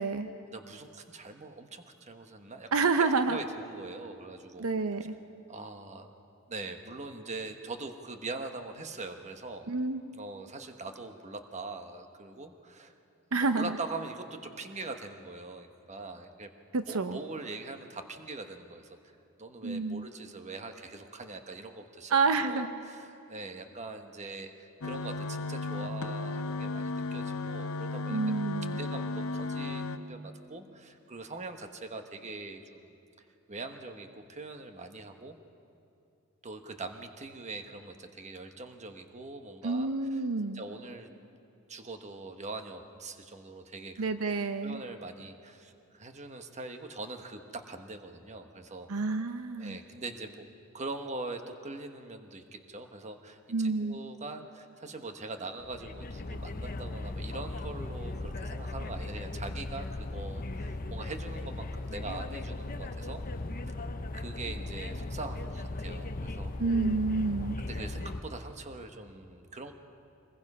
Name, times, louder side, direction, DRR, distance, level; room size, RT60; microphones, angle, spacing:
voice 1, 0.5-2.7 3.0-4.6 5.5-6.2 6.5-9.7 10.1-12.9 13.5-16.5 16.9-19.0 19.4-22.1 22.4-28.2 28.8-32.9 33.5-35.4 36.4-40.2 40.5-41.1 41.7-44.3 44.6-48.9 49.6-50.4 50.7-63.2 63.7-63.8 64.1-66.5 67.4-69.7, right 3 dB, 35° right, 6 dB, 1.2 m, -42 dB
voice 2, 2.7-3.4 4.6-5.2 9.7-10.0 13.3-13.8 16.7-17.2 19.6-20.1 22.1-22.7 28.1-28.8 39.6-40.6 44.0-44.8 48.9-49.8 53.5-54.0 66.6-67.6, right 4 dB, 75° right, 9 dB, 0.7 m, -29 dB
sound 1, 24.8-30.0, left 3 dB, 75° left, 0.8 m, -34 dB
sound 2, 55.6-68.2, left 2 dB, 40° left, 0.8 m, -37 dB
25.0 x 20.5 x 5.5 m, 2.7 s
head